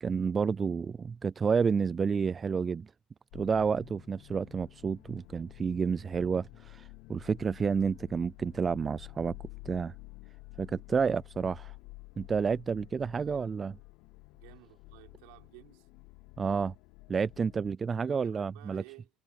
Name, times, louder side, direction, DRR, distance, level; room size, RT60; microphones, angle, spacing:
voice 1, 0.0-2.9 3.3-9.4 9.7-9.9 10.6-11.7 12.2-13.7 16.4-16.7 17.1-18.8, right 6 dB, 30° right, 0.3 m, -30 dB
sound 1, 3.3-17.7, left 23 dB, 75° left, 0.6 m, -51 dB
voice 2, 14.4-15.9 18.1-19.1, right 31 dB, 85° right, 5.3 m, -54 dB
supercardioid pair, 90°, 0 cm